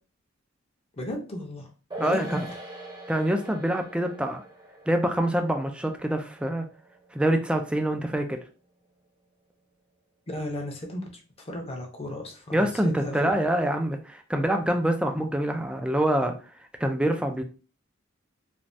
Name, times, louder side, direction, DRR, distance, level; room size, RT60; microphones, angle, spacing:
voice 1, 0.9-1.7 2.0-2.5 10.3-11.1 11.4-13.3, left 1 dB, 30° left, 2 dB, 0.7 m, -35 dB
sound 1, 1.9-8.6 8.8-8.9, right 2 dB, 20° right, 0.8 m, -43 dB
voice 2, 2.0-2.4 3.1-4.4 4.9-6.6 7.1-8.4 12.5-16.3 16.8-17.4, right 1 dB, 5° right, 5 dB, 0.4 m, -25 dB
3.2 x 2.3 x 2.6 m, 0.35 s
head